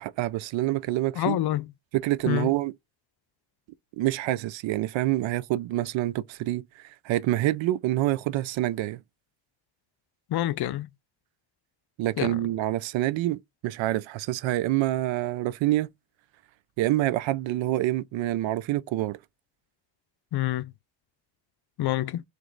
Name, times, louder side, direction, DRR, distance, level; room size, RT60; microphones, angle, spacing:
voice 1, 0.0-1.4 1.9-2.7 4.0-9.0 12.0-15.9 16.8-19.2, right 15 dB, 75° right, 0.5 m, -27 dB
voice 2, 1.2-1.7 2.3-2.5 10.3-10.9 12.2-12.4 20.3-20.7 21.8-22.2, left 14 dB, 55° left, 0.5 m, -27 dB
3.2 x 3.0 x 3.8 m
supercardioid pair, 65°, 47 cm